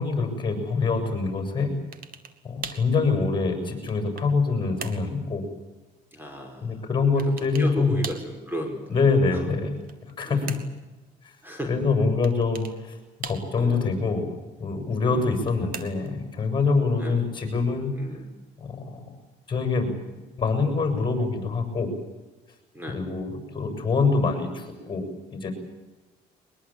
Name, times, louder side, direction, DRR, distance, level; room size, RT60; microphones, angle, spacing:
voice 1, 0.0-1.7 2.4-5.4 6.6-7.9 8.9-9.8 10.0-10.4 11.2-11.3 11.7-14.3 14.6-17.9 18.6-19.1 19.5-21.9 22.9-25.5, left 4 dB, 30° left, 7 dB, 7.2 m, -25 dB
sound 1, 1.9-2.4 2.6-2.9 3.6-4.4 4.8-5.1 7.2-7.7 8.0-8.3 9.7-10.8 12.2-12.8 13.2-13.8 15.2-16.2, right 7 dB, 60° right, 2.6 m, -39 dB
voice 2, 6.1-6.9 7.4-8.8 9.3-9.5 10.2-10.6 11.4-11.7 13.5-13.9 15.0-15.5 17.0-17.3 18.0-18.3 22.7-23.0, equal, 10° right, 4 dB, 5.3 m, -35 dB
22.5 x 21.5 x 8.8 m, 1.2 s
cardioid pair, 110°, 17 cm